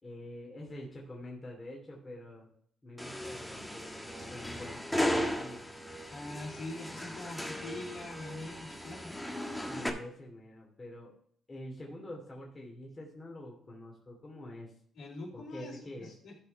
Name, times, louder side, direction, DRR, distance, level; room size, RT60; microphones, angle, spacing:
voice 1, 0.0-2.5 2.8-5.6 9.7-11.1 11.5-14.7 15.3-16.1, left 1 dB, 25° left, -2 dB, 2.6 m, -46 dB
sound 1, 3.0-9.9, equal, 5° left, 1.5 m, -36 dB
voice 2, 6.1-9.2 14.9-16.4, left 2 dB, 70° left, -3 dB, 4.4 m, -43 dB
13.0 x 4.9 x 4.6 m, 0.63 s
cardioid pair, 90°, 0 cm